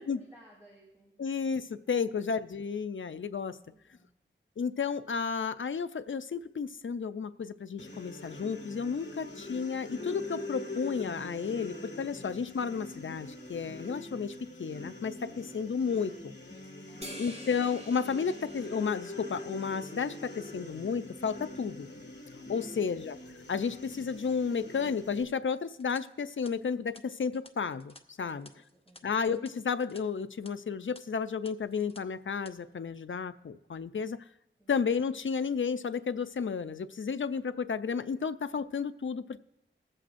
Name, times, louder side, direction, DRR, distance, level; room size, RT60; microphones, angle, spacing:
voice 1, 0.0-1.2 2.0-2.1 3.7-4.1 16.9-17.4 22.5-22.8 28.2-29.1 34.6-34.7, right 1 dB, 15° right, -5 dB, 4.6 m, -60 dB
voice 2, 1.2-1.6 1.9-3.5 4.6-14.3 14.6-16.1 17.2-21.9 22.5-23.2 23.5-27.9 28.2-28.5 29.0-34.2 34.7-39.4, left 6 dB, 75° left, 12 dB, 0.4 m, -32 dB
sound 1, 7.8-25.2, left 2 dB, 60° left, 1.5 m, -43 dB
sound 2, 17.0-19.7, equal, 30° right, 1.5 m, -47 dB
sound 3, 25.7-30.0 30.3-30.5 30.9-31.0 31.4-32.0 32.3-32.5, left 2 dB, 30° left, 0.7 m, -56 dB
21.5 x 7.7 x 2.5 m, 0.84 s
wide cardioid pair, 45°, 20 cm